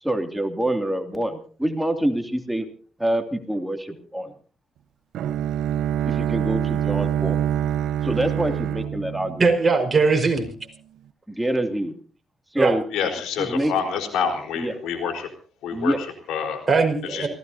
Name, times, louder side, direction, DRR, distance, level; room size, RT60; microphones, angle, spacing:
voice 1, 0.0-2.7 3.0-4.3 6.0-7.4 8.0-9.5 11.3-11.9 12.5-12.8 13.4-13.7 14.6-14.7 15.7-16.0, right 1 dB, 5° right, 4 dB, 2.6 m, -26 dB
Bowed string instrument, 5.1-10.1, right 10 dB, 80° right, 0.7 m, -25 dB
voice 2, 9.4-10.5 12.6-12.7 16.7-17.3, right 4 dB, 30° right, 4 dB, 4.9 m, -19 dB
voice 3, 12.9-15.3 15.6-16.6 17.0-17.3, left 7 dB, 90° left, 4 dB, 4.2 m, -27 dB
29.0 x 17.0 x 2.8 m, 0.42 s
cardioid pair, 90°, 0 cm